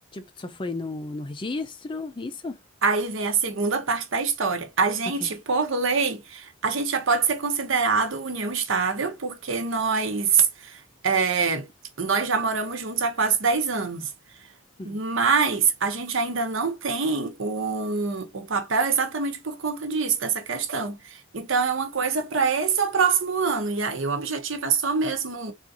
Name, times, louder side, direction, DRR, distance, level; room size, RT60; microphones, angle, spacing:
voice 1, 0.1-2.6 5.2-5.3 14.8-15.0, left 3 dB, 25° left, 0.4 m, -33 dB
voice 2, 2.8-11.7 12.0-14.1 14.8-25.5, right 5 dB, 65° right, 0.8 m, -25 dB
3.7 x 2.5 x 2.6 m
head